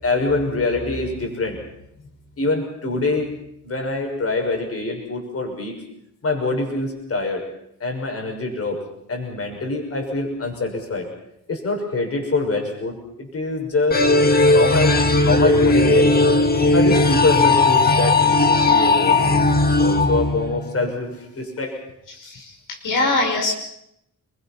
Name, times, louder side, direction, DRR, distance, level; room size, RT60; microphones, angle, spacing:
voice 1, 0.0-1.6 2.4-5.7 6.2-7.4 7.8-8.8 9.1-11.1 11.5-16.1 16.7-19.5 19.8-21.8, left 3 dB, 45° left, 2 dB, 6.2 m, -24 dB
sound 1, 13.9-20.9, left 2 dB, 30° left, 1.9 m, -17 dB
voice 2, 22.1-23.5, left 2 dB, 90° left, 1 dB, 5.6 m, -23 dB
28.0 x 22.0 x 5.9 m, 0.77 s
wide cardioid pair, 130°, 31 cm